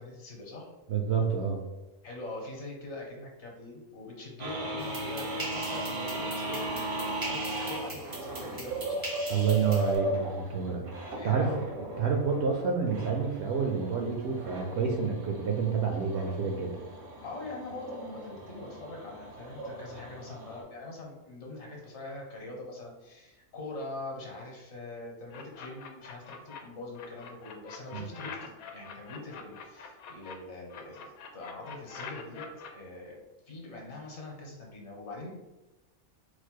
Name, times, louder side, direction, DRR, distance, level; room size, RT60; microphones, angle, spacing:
voice 1, 0.0-0.7 2.0-9.1 11.1-11.6 17.2-32.4 32.7-35.3, left 2 dB, 55° left, -1 dB, 1.2 m, -43 dB
voice 2, 0.9-1.6 9.3-10.8 11.2-11.5 12.0-16.8 27.9-28.1, right 6 dB, 65° right, 2 dB, 0.7 m, -28 dB
sound 1, 4.4-20.6, right 1 dB, 80° right, 1.4 m, -37 dB
sound 2, 4.8-10.0, right 2 dB, 25° right, 0.4 m, -41 dB
sound 3, 25.3-26.6 26.9-30.3 30.7-32.7, left 6 dB, 90° left, 1.0 m, -44 dB
4.5 x 2.1 x 4.5 m, 1.1 s
omnidirectional pair, 1.5 m